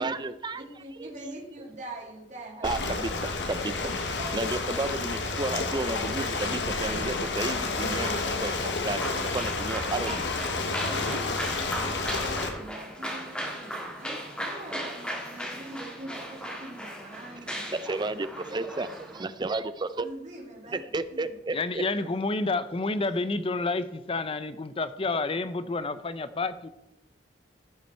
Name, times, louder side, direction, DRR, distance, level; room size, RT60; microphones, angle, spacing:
voice 1, 0.0-0.6 1.0-1.1 2.6-3.8 4.2-8.5 8.8-10.2 17.7-20.1 20.7-21.8, right 2 dB, 25° right, 13 dB, 0.5 m, -32 dB
voice 2, 0.5-3.1 5.3-5.8 10.0-17.8 18.5-18.7 20.0-21.6 21.9-22.2, right 1 dB, 40° right, -2 dB, 2.4 m, -43 dB
Ocean, 2.6-12.5, left 3 dB, 70° left, 1.3 m, -30 dB
sound 1, 9.0-19.2, equal, 5° left, 1.8 m, -37 dB
voice 3, 21.5-26.7, left 3 dB, 30° left, 13 dB, 0.6 m, -29 dB
15.0 x 5.9 x 4.4 m, 0.93 s
head